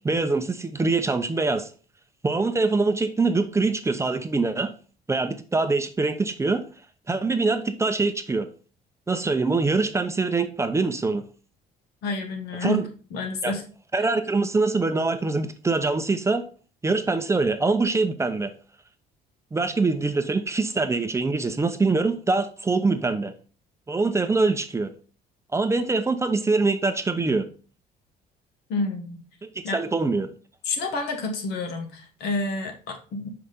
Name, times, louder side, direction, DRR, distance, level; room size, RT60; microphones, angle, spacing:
voice 1, 0.0-1.7 2.2-4.7 5.1-6.6 7.1-8.5 9.1-11.2 12.6-12.9 13.4-13.5 13.9-16.4 16.8-18.5 19.5-23.3 23.9-24.9 25.5-27.5 29.4-30.3, right 3 dB, 15° right, 8 dB, 0.7 m, -24 dB
voice 2, 12.0-12.8 13.1-13.6 28.7-29.2 29.6-29.8 30.6-33.3, left 2 dB, 75° left, 5 dB, 1.5 m, -29 dB
5.8 x 4.9 x 4.1 m, 0.37 s
cardioid pair, 110°, 17 cm